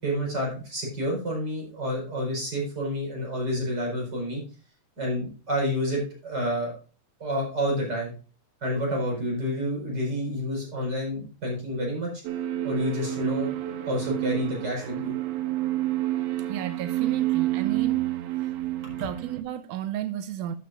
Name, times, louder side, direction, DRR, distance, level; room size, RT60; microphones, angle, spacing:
voice 1, 0.0-4.4 5.0-6.7 7.2-8.1 8.6-12.1 12.6-13.5 13.8-15.1, equal, 30° right, 5.2 m, -29 dB
sound 1, 12.2-19.4, right 14 dB, 70° right, 1.9 m, -28 dB
voice 2, 16.5-18.0 18.4-18.5 19.0-20.6, right 11 dB, 90° right, 2.2 m, -33 dB
11.5 x 8.8 x 2.5 m
omnidirectional pair, 3.5 m